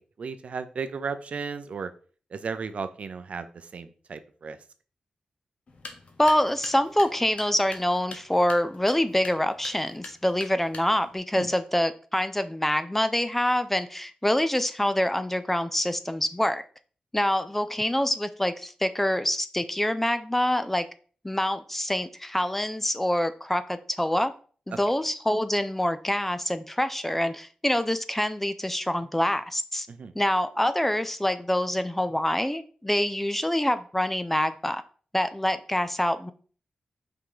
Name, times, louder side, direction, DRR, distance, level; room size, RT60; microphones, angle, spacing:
voice 1, 0.0-1.9 2.3-4.6 11.4-11.5 24.7-24.8 29.9-30.1, right 5 dB, 60° right, 11 dB, 0.6 m, -35 dB
sound 1, 5.7-11.2, left 3 dB, 55° left, 1.3 m, -45 dB
voice 2, 6.2-16.6 17.1-20.8 21.2-24.3 24.7-29.9 30.2-34.8 35.1-36.3, left 1 dB, 10° left, 12 dB, 0.4 m, -26 dB
5.6 x 3.8 x 4.9 m, 0.41 s
wide cardioid pair, 120°, 2 cm